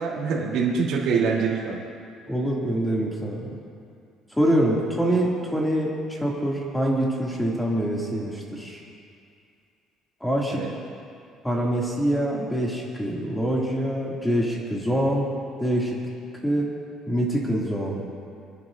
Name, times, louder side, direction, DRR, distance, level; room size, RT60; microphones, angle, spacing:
voice 1, 0.0-1.8 10.5-10.7, right 5 dB, 70° right, -4 dB, 3.1 m, -24 dB
voice 2, 2.3-3.6 4.3-8.8 10.2-10.6 11.4-15.3 15.6-16.0 16.4-16.7 17.1-18.1, right 1 dB, 5° left, -4 dB, 2.4 m, -25 dB
26.0 x 11.0 x 2.6 m, 2.4 s
cardioid pair, 135°, 0 cm